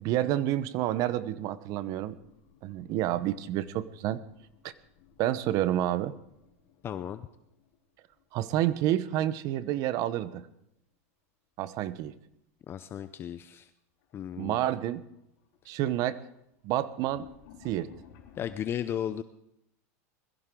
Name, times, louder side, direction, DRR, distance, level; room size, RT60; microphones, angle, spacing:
voice 1, 0.0-2.2 2.6-4.2 4.6-4.7 5.2-6.1 8.3-10.5 11.6-12.1 14.4-15.0 15.7-16.2 16.6-17.3 17.6-17.9, right 13 dB, 50° right, 15 dB, 1.0 m, -29 dB
sound 1, 1.9-8.7 9.0-9.9 11.6-11.9 12.4-12.5 13.5-13.6 14.0-14.4 14.8-18.5, left 9 dB, 60° left, 3.7 m, -58 dB
voice 2, 6.8-7.3 12.7-13.7 14.1-14.6 18.4-19.2, left 10 dB, 30° left, 12 dB, 0.6 m, -35 dB
21.5 x 14.5 x 3.8 m, 0.80 s
supercardioid pair, 125°, 8 cm